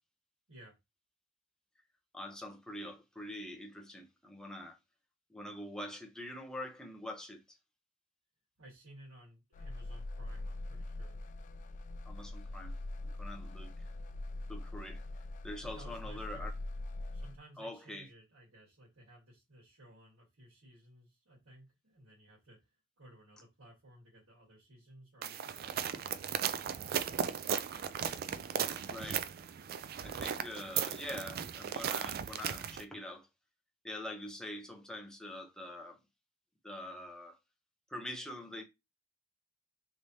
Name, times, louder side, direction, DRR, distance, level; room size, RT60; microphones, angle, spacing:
voice 1, 2.1-4.8 5.3-7.6 12.1-12.7 13.0-13.9 14.5-15.0 15.4-16.5 17.6-18.1 28.9-29.2 30.0-33.3 33.8-36.0 36.6-37.4 37.9-38.6, left 1 dB, 5° left, 0.7 m, -44 dB
voice 2, 8.6-11.2 15.6-16.6 17.1-22.6 23.0-26.7, right 1 dB, 90° right, 1.6 m, -57 dB
sound 1, 9.5-17.4, left 2 dB, 40° left, 0.3 m, -42 dB
sound 2, 25.2-32.8, right 8 dB, 50° right, 0.3 m, -36 dB
3.2 x 3.2 x 2.7 m
head